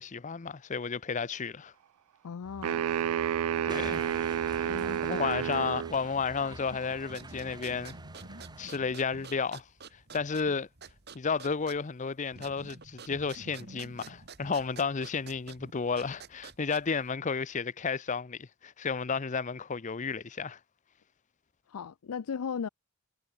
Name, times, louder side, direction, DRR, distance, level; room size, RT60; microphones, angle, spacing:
voice 1, 0.0-1.7 3.6-4.0 4.6-4.7 5.0-7.9 8.6-10.7 11.1-20.6, left 5 dB, 35° left, 0.6 m, -32 dB
voice 2, 2.2-2.8 4.7-5.3 21.7-22.7, left 6 dB, 80° left, 0.5 m, -37 dB
sound 1, 2.4-8.7, right 2 dB, 20° right, 2.0 m, -46 dB
sound 2, 2.6-6.0, right 9 dB, 75° right, 0.3 m, -30 dB
sound 3, 7.0-17.1, right 4 dB, 50° right, 2.0 m, -49 dB
head